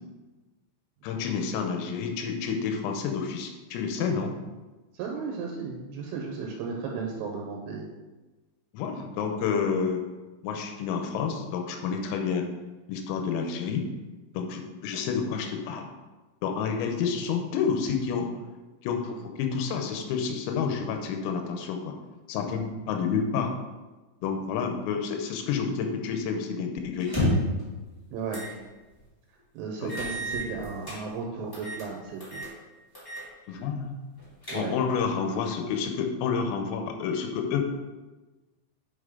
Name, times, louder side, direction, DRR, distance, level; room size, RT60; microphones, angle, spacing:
voice 1, 1.0-4.3 8.7-10.0 10.4-12.5 12.9-13.9 14.4-15.9 16.4-18.3 18.8-21.9 22.3-23.5 24.2-27.1 29.8-30.0 33.5-34.0 34.5-37.6, left 6 dB, 85° left, 4 dB, 3.6 m, -29 dB
voice 2, 4.9-7.9 28.1-28.5 29.5-32.4 34.5-34.7, right 5 dB, 80° right, 0 dB, 3.4 m, -34 dB
sound 1, 27.0-27.6 28.3-28.5 28.9-29.0 29.9-31.0 31.5-31.9 32.2-32.5 32.9-33.3 33.6-33.7 34.2-34.9, equal, 35° left, 0.3 m, -30 dB
10.0 x 5.2 x 3.8 m, 1.2 s
omnidirectional pair, 5.9 m